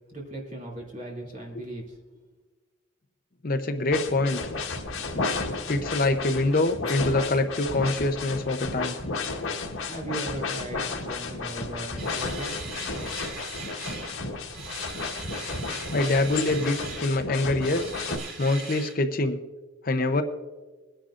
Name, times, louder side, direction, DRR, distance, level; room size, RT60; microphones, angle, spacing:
voice 1, 0.1-1.9 9.4-9.5 9.8-12.5, right 1 dB, 35° right, -2 dB, 2.6 m, -37 dB
voice 2, 3.4-4.5 5.7-8.9 15.9-17.9 18.4-19.4 19.8-20.2, left 2 dB, 40° left, 8 dB, 0.7 m, -25 dB
sound 1, 3.9-18.2, left 3 dB, 85° left, 1.4 m, -33 dB
sound 2, 12.0-14.2 14.5-17.1 17.6-18.9, right 4 dB, 85° right, 3.0 m, -40 dB
21.5 x 10.0 x 2.5 m, 1.3 s
head